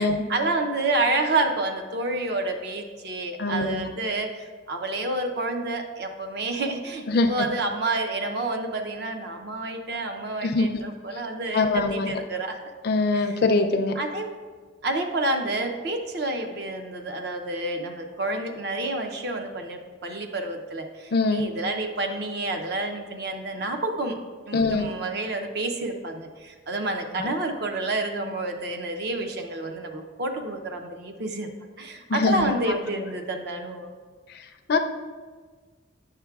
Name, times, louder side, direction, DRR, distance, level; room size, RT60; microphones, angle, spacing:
voice 1, 0.0-12.7 13.1-13.4 14.0-14.3 14.8-24.2 24.5-31.5 31.8-33.9, right 2 dB, 55° right, 5 dB, 0.6 m, -29 dB
voice 2, 3.4-3.9 7.1-7.5 10.4-10.8 11.5-12.2 12.8-14.0 21.1-21.4 24.5-24.9 27.2-27.3 32.1-32.5 34.3-34.4 34.7-34.8, left 3 dB, 50° left, 6 dB, 0.4 m, -23 dB
9.0 x 6.5 x 2.3 m, 1.5 s
head